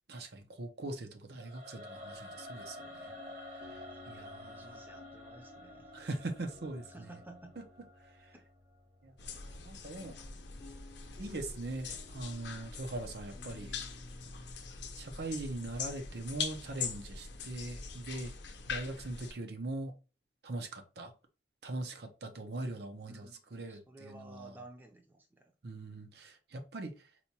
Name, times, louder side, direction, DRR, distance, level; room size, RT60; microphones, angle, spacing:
voice 1, 0.1-3.1 3.5-4.8 5.9-7.1 7.6-7.7 8.0-8.3 9.0-10.2 11.2-13.8 15.0-18.3 18.7-19.9 20.4-21.1 21.6-24.6 25.6-27.1, right 2 dB, 65° right, 0.6 m, -41 dB
Singing / Musical instrument, 1.4-8.5, left 1 dB, 40° right, 0.9 m, -50 dB
sound 1, 1.9-19.8, left 2 dB, 35° left, 0.5 m, -57 dB
voice 2, 3.1-3.5 3.9-4.0 4.5-5.9 6.9-7.6 8.3-8.4 23.1-25.5, right 2 dB, 10° right, 0.5 m, -54 dB
sound 2, 9.2-19.3, left 5 dB, 80° left, 0.6 m, -43 dB
4.2 x 2.2 x 2.8 m
head